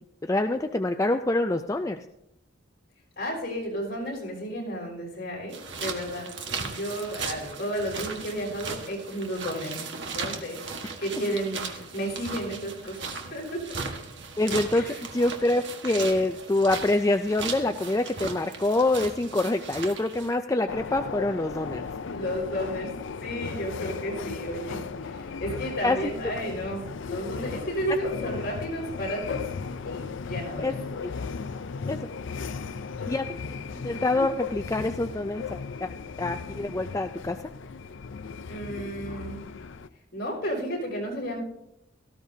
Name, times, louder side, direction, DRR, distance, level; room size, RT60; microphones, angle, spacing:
voice 1, 0.2-2.0 14.4-14.9 15.1-21.9 25.8-26.1 30.6-30.7 31.9-32.0 33.1-33.2 33.7-37.4, left 2 dB, 15° left, 7 dB, 0.3 m, -26 dB
voice 2, 3.2-10.6 11.0-13.8 14.7-15.0 22.1-29.5 29.8-30.7 38.5-39.4 40.1-41.4, equal, 50° left, -1 dB, 5.7 m, -33 dB
sound 1, 5.5-20.3, right 5 dB, 60° right, 1.5 m, -37 dB
sound 2, 20.7-39.9, left 5 dB, 70° left, 0.5 m, -36 dB
17.5 x 15.0 x 2.8 m, 0.85 s
head